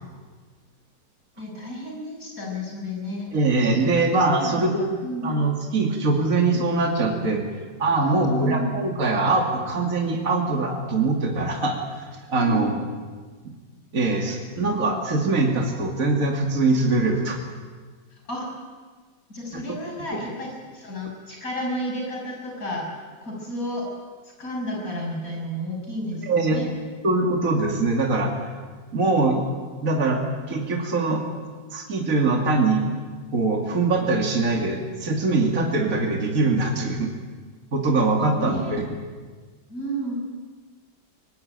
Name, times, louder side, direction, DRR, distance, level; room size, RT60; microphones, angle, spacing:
voice 1, 1.4-3.3 3.8-4.0 4.3-5.4 8.0-8.7 12.4-12.7 18.1-18.5 19.3-22.9 23.2-23.9 24.2-26.7 38.4-38.8 39.7-40.1, equal, 45° left, 0 dB, 7.1 m, -31 dB
voice 2, 3.3-4.9 5.2-7.5 7.8-11.8 12.3-12.7 13.9-17.4 19.5-19.6 26.3-26.6 27.0-28.3 28.9-29.4 29.8-31.2 31.7-32.8 33.3-37.1 37.7-38.8, right 3 dB, 45° right, 1 dB, 2.9 m, -22 dB
24.5 x 19.0 x 9.2 m, 1.5 s
omnidirectional pair, 2.0 m